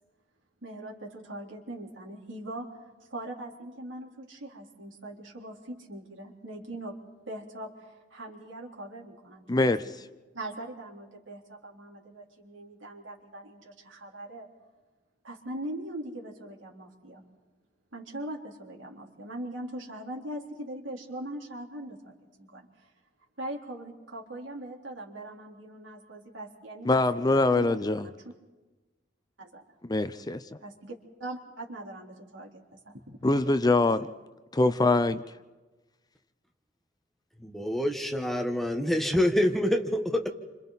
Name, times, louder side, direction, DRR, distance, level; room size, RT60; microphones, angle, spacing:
voice 1, 0.6-7.0 7.3-9.7 10.3-14.5 15.2-17.2 17.9-22.9 23.4-28.2 29.4-29.6 30.6-33.0 33.8-34.2, right 1 dB, 80° right, -2 dB, 3.8 m, -41 dB
voice 2, 9.5-9.8 26.8-28.1 29.9-30.4 33.2-34.0 34.5-35.2, left 2 dB, 20° left, 12 dB, 0.6 m, -23 dB
voice 3, 37.4-40.3, left 1 dB, ahead, 3 dB, 1.3 m, -26 dB
29.5 x 26.5 x 4.2 m, 1.2 s
head